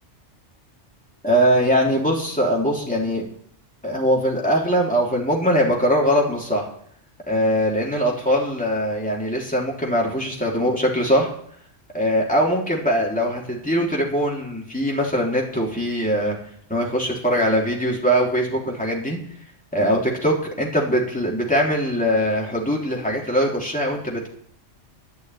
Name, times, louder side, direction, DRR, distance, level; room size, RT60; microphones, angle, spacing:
voice 1, 1.2-3.2 3.8-6.7 7.3-11.3 11.9-16.4 16.7-19.2 19.7-24.3, equal, 5° left, -3 dB, 3.4 m, -21 dB
12.0 x 6.3 x 9.6 m, 0.63 s
omnidirectional pair, 1.2 m